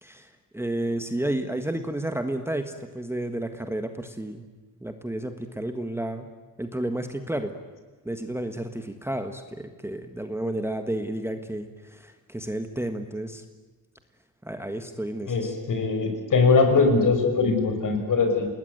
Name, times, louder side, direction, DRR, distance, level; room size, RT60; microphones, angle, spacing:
voice 1, 0.0-4.4 4.8-6.3 6.6-7.5 8.0-13.4 14.4-15.5, right 1 dB, 5° right, 7 dB, 1.5 m, -31 dB
voice 2, 15.3-18.5, left 4 dB, 55° left, 6 dB, 6.1 m, -21 dB
29.5 x 20.0 x 9.4 m, 1.3 s
wide cardioid pair, 150°, 38 cm